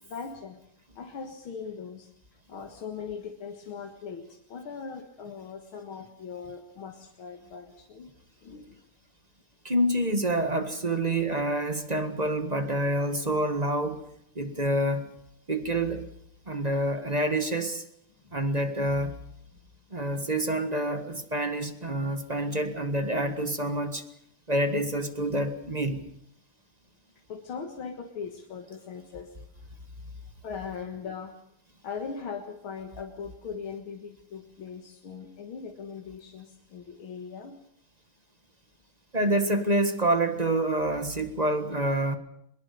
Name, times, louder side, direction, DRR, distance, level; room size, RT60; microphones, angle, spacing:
voice 1, 0.0-0.6 1.0-2.1 2.5-8.1 8.4-8.8 27.3-29.3 30.4-31.3 31.8-37.6, left 6 dB, 75° left, 3 dB, 2.5 m, -40 dB
voice 2, 9.6-14.0 14.3-15.1 15.5-16.1 16.5-17.8 18.3-19.2 19.9-24.0 24.5-26.0 39.1-42.2, right 1 dB, 20° right, 8 dB, 1.4 m, -27 dB
22.5 x 22.0 x 6.8 m, 0.74 s
omnidirectional pair, 2.3 m